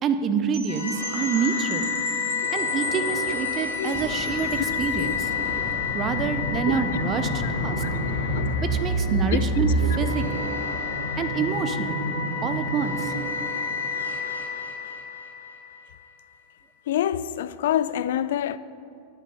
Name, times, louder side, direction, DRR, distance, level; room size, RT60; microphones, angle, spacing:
voice 1, 0.0-1.9 2.5-5.3 5.9-7.8 8.7-10.5 11.2-12.0 12.4-13.1, right 6 dB, 30° right, 0.7 m, -27 dB
Percussion / Wind chime, 0.5-5.2, right 5 dB, 50° right, 2.1 m, -39 dB
sound 1, 0.7-15.8, left 2 dB, 80° left, 1.5 m, -28 dB
voice 2, 3.8-4.1 4.6-4.7 4.9-5.1 6.7-6.8 7.4-7.5 7.8-7.9 8.3-8.5 9.3-9.4 9.8-10.0 16.9-18.6, left 11 dB, 55° left, 0.4 m, -27 dB
Fixed-wing aircraft airplane, 3.9-10.6, left 2 dB, 10° left, 1.0 m, -37 dB
10.0 x 8.8 x 5.3 m
figure-of-eight pair, 90°, 0 cm